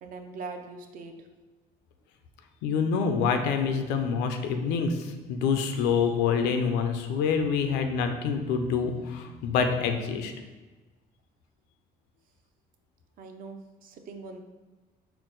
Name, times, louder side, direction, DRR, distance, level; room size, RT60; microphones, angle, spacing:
voice 1, 0.0-1.2 13.2-14.4, right 4 dB, 55° right, 5 dB, 0.5 m, -41 dB
voice 2, 2.6-10.3, left 6 dB, 90° left, 6 dB, 0.4 m, -26 dB
4.5 x 2.0 x 3.7 m, 1.2 s
cardioid pair, 110°, 17 cm